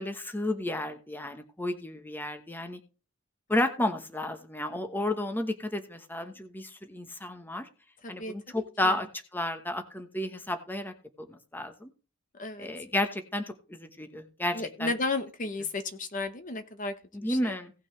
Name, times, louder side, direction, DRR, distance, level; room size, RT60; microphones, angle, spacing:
voice 1, 0.0-2.8 3.5-7.7 8.1-9.1 9.3-10.9 11.3-11.9 12.6-13.4 13.7-14.9 17.1-17.7, left 1 dB, 10° left, 6 dB, 1.0 m, -32 dB
voice 2, 8.0-9.0 12.3-12.7 14.5-16.9 17.2-17.5, left 3 dB, 35° left, 8 dB, 0.9 m, -34 dB
17.5 x 6.2 x 3.2 m, 0.34 s
head